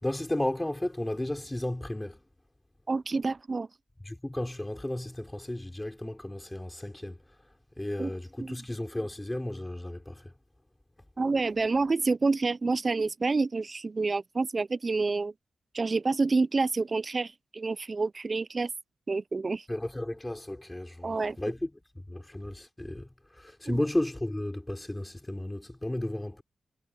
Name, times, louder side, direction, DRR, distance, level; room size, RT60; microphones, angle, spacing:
voice 1, 0.0-2.2 4.0-7.2 7.8-10.3 19.7-21.7 22.1-26.4, left 1 dB, 10° left, 4.0 m, -33 dB
voice 2, 2.9-3.7 8.0-8.1 8.4-8.6 11.2-15.3 15.7-18.7 19.1-19.6 21.0-21.4 23.7-23.8, right 3 dB, 35° right, 0.4 m, -28 dB
wide cardioid pair, 110°, 0 cm